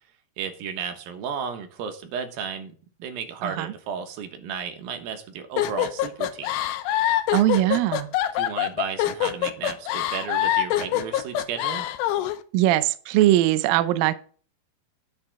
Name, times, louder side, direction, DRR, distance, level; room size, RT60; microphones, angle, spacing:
voice 1, 0.4-2.7 3.0-6.5 8.3-11.9, right 7 dB, 70° right, 7 dB, 2.8 m, -33 dB
voice 2, 3.4-3.7 7.3-8.1 12.5-14.1, right 14 dB, 85° right, 13 dB, 2.0 m, -21 dB
sound 1, 5.6-12.4, left 12 dB, 85° left, 2.9 m, -25 dB
9.7 x 8.8 x 3.6 m, 0.40 s
omnidirectional pair, 4.8 m